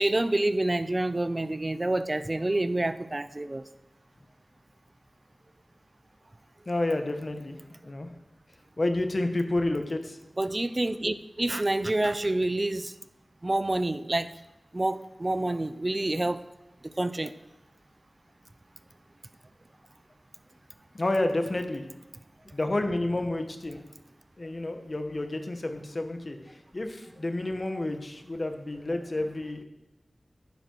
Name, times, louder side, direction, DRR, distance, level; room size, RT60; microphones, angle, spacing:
voice 1, 0.0-3.6 10.4-12.9 13.4-14.3 14.7-16.5 16.8-17.4, right 2 dB, 35° right, 13 dB, 0.6 m, -28 dB
voice 2, 6.7-7.6 7.8-8.1 8.8-10.2 20.9-21.8 22.5-23.8 24.4-29.6, left 2 dB, 45° left, 6 dB, 1.3 m, -30 dB
11.0 x 9.5 x 4.6 m, 0.96 s
wide cardioid pair, 60°, 0 cm